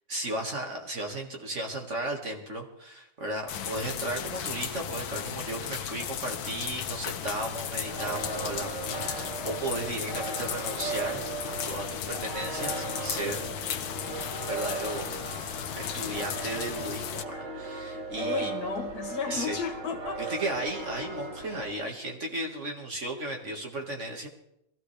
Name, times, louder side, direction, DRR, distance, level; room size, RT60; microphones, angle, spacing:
voice 1, 0.1-13.4 13.8-13.9 14.5-15.1 15.7-18.5 19.3-19.6 20.2-24.3, right 1 dB, 40° right, 1 dB, 2.1 m, -35 dB
sound 1, 3.5-17.2, left 9 dB, 90° left, 1.6 m, -35 dB
sound 2, 7.8-21.7, right 3 dB, 60° right, 3.0 m, -37 dB
voice 2, 18.2-20.4, left 5 dB, 50° left, 3 dB, 2.3 m, -34 dB
22.5 x 15.5 x 3.3 m, 0.82 s
omnidirectional pair, 2.1 m